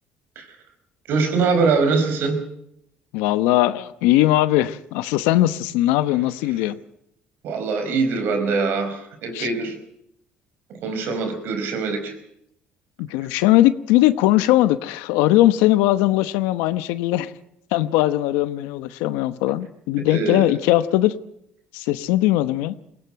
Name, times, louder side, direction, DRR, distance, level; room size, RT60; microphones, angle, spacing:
voice 1, 1.1-2.4 7.4-9.8 10.8-12.1 20.1-20.4, right 4 dB, 70° right, 7 dB, 4.6 m, -23 dB
voice 2, 3.1-6.8 9.3-9.5 13.0-17.3 17.7-21.1 21.7-22.7, left 15 dB, 90° left, 13 dB, 0.9 m, -19 dB
21.5 x 17.5 x 7.7 m, 0.77 s
supercardioid pair, 90°, 4 cm